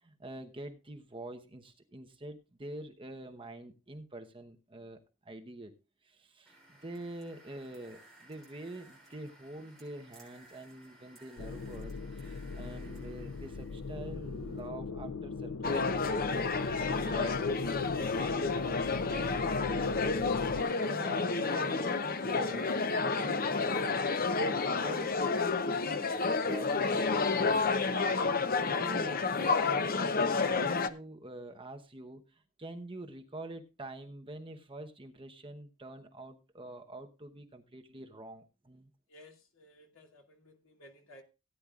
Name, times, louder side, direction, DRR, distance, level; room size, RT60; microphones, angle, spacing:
voice 1, 0.0-5.7 6.0-20.4 20.8-23.9 24.4-25.1 25.7-27.7 28.0-38.9, right 1 dB, 25° right, 5 dB, 0.9 m, -46 dB
sound 1, 6.5-14.7, right 2 dB, ahead, 6.6 m, -59 dB
sound 2, 11.4-20.6, left 4 dB, 80° left, 0.5 m, -38 dB
sound 3, 15.6-30.9, left 4 dB, 40° left, 0.7 m, -30 dB
voice 2, 39.1-41.2, left 1 dB, 65° left, 2 dB, 2.7 m, -56 dB
17.0 x 9.9 x 2.4 m, 0.28 s
head